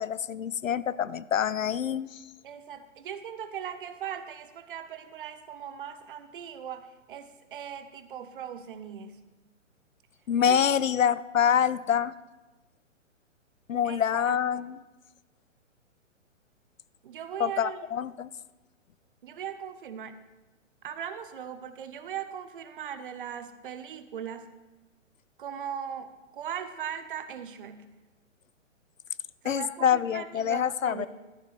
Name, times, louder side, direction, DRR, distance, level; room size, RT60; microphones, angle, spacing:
voice 1, 0.0-2.2 10.3-12.1 13.7-14.8 17.4-18.3 29.4-31.1, left 8 dB, 80° left, 18 dB, 0.5 m, -26 dB
voice 2, 2.4-9.2 10.4-10.6 13.8-14.6 17.0-17.8 19.2-20.2 20.8-24.5 25.4-27.9 29.4-31.1, right 8 dB, 45° right, 12 dB, 0.8 m, -39 dB
13.0 x 6.9 x 4.5 m, 1.1 s
figure-of-eight pair, 125°, 39 cm